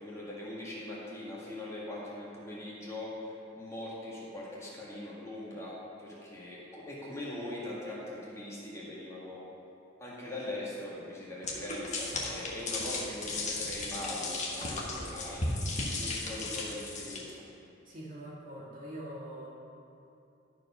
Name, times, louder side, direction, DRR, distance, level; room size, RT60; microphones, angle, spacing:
voice 1, 0.0-9.4 10.0-15.4 16.0-17.4, left 1 dB, 15° left, -7 dB, 1.8 m, -41 dB
sound 1, 11.4-17.2, left 2 dB, 40° left, 1.4 m, -35 dB
voice 2, 17.9-19.5, right 1 dB, 45° right, -5 dB, 1.9 m, -43 dB
12.0 x 4.7 x 5.6 m, 2.7 s
head